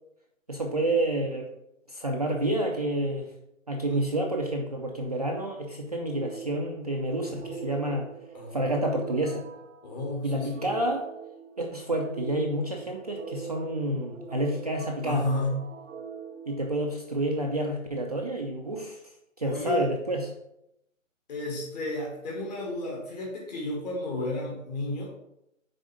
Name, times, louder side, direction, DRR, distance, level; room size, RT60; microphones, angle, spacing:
voice 1, 0.5-1.5 1.9-3.3 3.7-8.1 8.5-9.4 10.2-11.1 11.6-15.2 16.5-19.0 19.4-20.3, right 1 dB, 30° right, 0 dB, 0.4 m, -29 dB
sound 1, 6.1-17.4, right 6 dB, 65° right, 0.8 m, -43 dB
voice 2, 9.8-10.7 15.0-15.6 19.4-19.9 21.3-25.1, left 1 dB, 30° left, -2 dB, 1.8 m, -32 dB
6.3 x 4.3 x 4.9 m, 0.81 s
hypercardioid pair, 160°, 40 cm